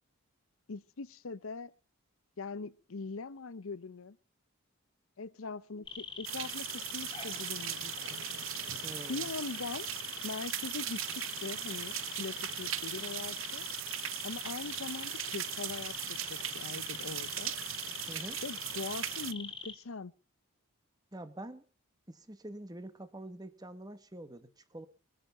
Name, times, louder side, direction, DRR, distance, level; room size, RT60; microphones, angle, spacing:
voice 1, 0.7-1.7 2.4-4.2 5.2-8.3 9.1-9.9 10.2-13.7 14.2-17.5 18.4-20.1, left 4 dB, 70° left, 0.7 m, -42 dB
sound 1, 5.9-19.7, left 4 dB, 20° left, 2.1 m, -43 dB
sound 2, 6.2-19.3, right 13 dB, 60° right, 0.7 m, -39 dB
voice 2, 8.8-9.3 18.1-18.4 21.1-21.6 22.1-24.9, right 1 dB, 15° right, 1.2 m, -46 dB
21.5 x 10.0 x 5.6 m
head